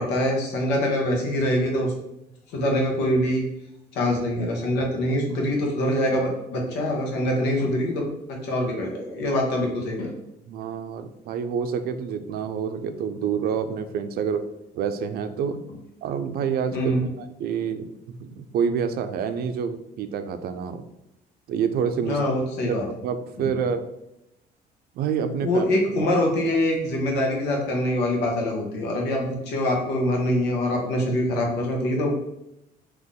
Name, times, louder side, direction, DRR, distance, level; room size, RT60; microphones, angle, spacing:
voice 1, 0.0-1.9 2.5-3.4 3.9-10.1 16.7-17.1 22.0-22.9 23.4-23.6 25.4-32.2, left 1 dB, 90° left, 0 dB, 1.2 m, -24 dB
voice 2, 10.5-14.4 14.8-15.6 16.0-20.9 21.5-22.2 22.7-22.8 23.0-23.8 24.9-25.7, right 7 dB, 65° right, 9 dB, 0.5 m, -27 dB
4.1 x 3.0 x 3.6 m, 0.86 s
cardioid pair, 110°, 17 cm